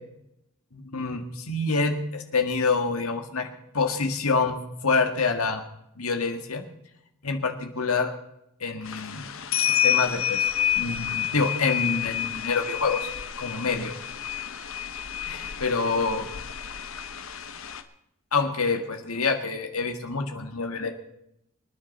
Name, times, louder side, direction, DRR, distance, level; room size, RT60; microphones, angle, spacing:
voice 1, 0.7-3.5 3.7-5.6 6.0-6.6 7.2-8.1 8.6-9.2 9.5-10.5 10.8-13.1 13.4-13.9 15.2-16.2 18.3-20.9, left 4 dB, 80° left, 5 dB, 1.9 m, -27 dB
sound 1, 8.8-17.8, left 10 dB, 65° left, 1.1 m, -29 dB
26.0 x 9.9 x 4.2 m, 0.80 s
head